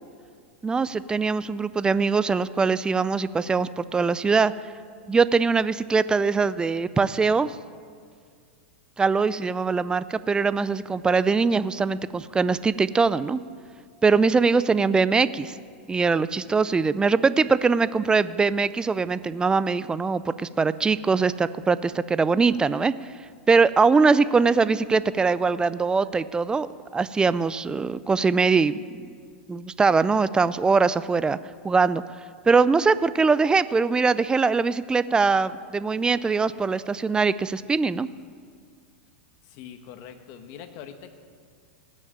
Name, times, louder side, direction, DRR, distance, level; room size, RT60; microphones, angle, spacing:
voice 1, 0.6-4.5 5.1-7.5 9.0-13.4 14.0-15.6 15.9-22.9 23.5-28.8 29.5-31.4 31.6-32.0 32.5-38.1, right 4 dB, 10° right, 16 dB, 0.4 m, -22 dB
voice 2, 39.4-41.1, left 8 dB, 50° left, 8 dB, 1.3 m, -43 dB
16.5 x 6.5 x 8.8 m, 2.1 s
hypercardioid pair, 110°, 7 cm